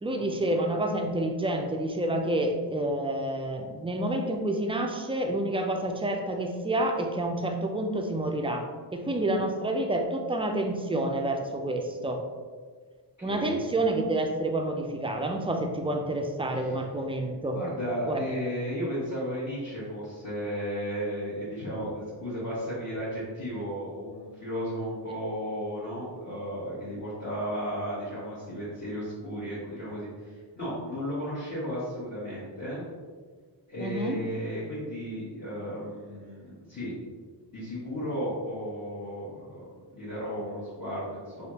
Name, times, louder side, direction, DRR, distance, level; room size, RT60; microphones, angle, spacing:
voice 1, 0.0-12.2 13.2-17.6 18.1-18.2 33.8-34.2, right 1 dB, 15° right, 3 dB, 0.3 m, -29 dB
voice 2, 13.2-13.7 16.6-16.7 17.5-32.8 33.7-36.9 37.5-41.5, equal, 40° left, -12 dB, 1.3 m, -34 dB
3.5 x 2.4 x 2.8 m, 1.5 s
cardioid pair, 75°, 44 cm